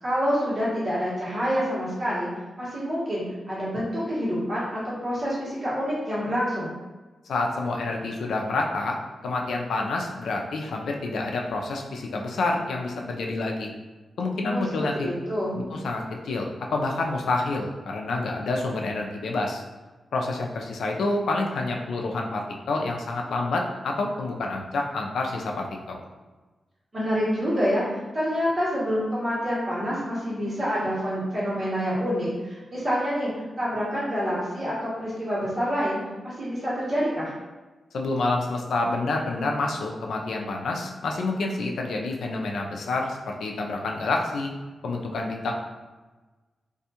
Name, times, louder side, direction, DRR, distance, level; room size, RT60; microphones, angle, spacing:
voice 1, 0.0-2.3 2.6-6.7 14.5-15.6 26.9-33.3 33.6-36.0 36.2-37.3, equal, 35° right, -8 dB, 1.2 m, -27 dB
voice 2, 7.3-9.0 9.2-13.7 14.2-14.9 15.5-19.6 20.1-26.0 37.9-44.5 44.8-45.5, left 2 dB, 90° left, 1 dB, 0.4 m, -28 dB
2.6 x 2.2 x 2.8 m, 1.2 s
wide cardioid pair, 105°, 0 cm